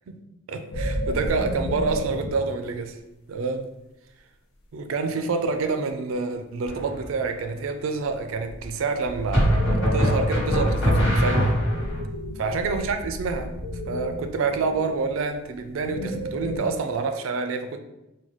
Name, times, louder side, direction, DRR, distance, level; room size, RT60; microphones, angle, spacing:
voice 1, 0.5-3.0 3.3-3.7 4.7-11.6 12.4-13.5 13.9-17.8, right 4 dB, 70° right, 7 dB, 0.3 m, -28 dB
sound 1, 0.7-2.6 5.9-6.0 8.0-16.6, left 1 dB, 85° left, 0.6 m, -32 dB
sound 2, 6.7-7.1 9.3-12.0, equal, 65° left, 1.3 m, -22 dB
3.8 x 2.2 x 3.0 m, 0.94 s
head